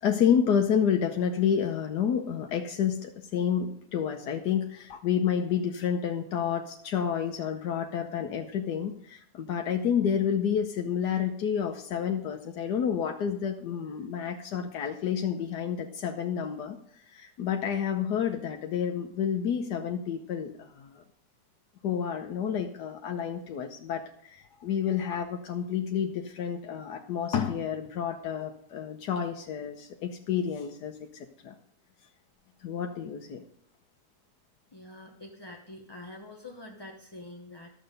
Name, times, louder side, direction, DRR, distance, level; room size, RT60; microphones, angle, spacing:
voice 1, 0.0-16.8 17.1-21.0 21.8-31.5 32.6-33.4, left 8 dB, 85° left, 3 dB, 1.4 m, -29 dB
voice 2, 34.7-37.7, left 2 dB, 20° left, 1 dB, 0.8 m, -45 dB
12.0 x 7.7 x 5.3 m, 0.66 s
omnidirectional pair, 1.7 m